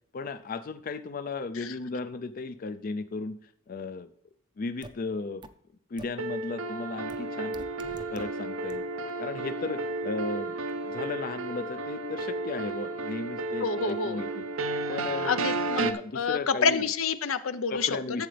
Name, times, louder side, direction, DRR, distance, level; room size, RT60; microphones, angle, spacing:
voice 1, 0.1-4.1 4.6-5.4 5.9-7.6 8.1-8.8 9.2-10.6 10.8-14.4 14.9-15.5 15.8-16.9 17.7-18.3, left 3 dB, 45° left, 11 dB, 0.4 m, -35 dB
sound 1, 4.8-4.9 5.4-5.5 6.0-6.1 7.1-7.2 7.5-8.2 8.7-8.8, right 2 dB, 25° right, 0.5 m, -44 dB
sound 2, 6.2-15.9, right 3 dB, 85° right, 0.7 m, -33 dB
voice 2, 13.6-14.2 15.2-17.9 18.2-18.3, left 5 dB, 85° left, 11 dB, 0.7 m, -28 dB
11.5 x 7.7 x 3.3 m, 0.65 s
head